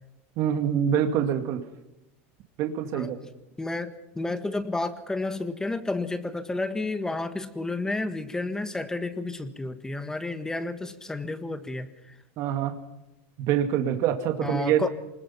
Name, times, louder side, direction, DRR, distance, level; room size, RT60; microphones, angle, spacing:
voice 1, 0.4-1.7 2.6-3.2 12.4-12.7 13.5-14.9, right 9 dB, 50° right, 6 dB, 2.1 m, -25 dB
voice 2, 3.6-12.1 14.4-14.9, left 2 dB, 10° left, 11 dB, 1.5 m, -31 dB
25.0 x 20.5 x 5.7 m, 0.92 s
supercardioid pair, 130°, 7 cm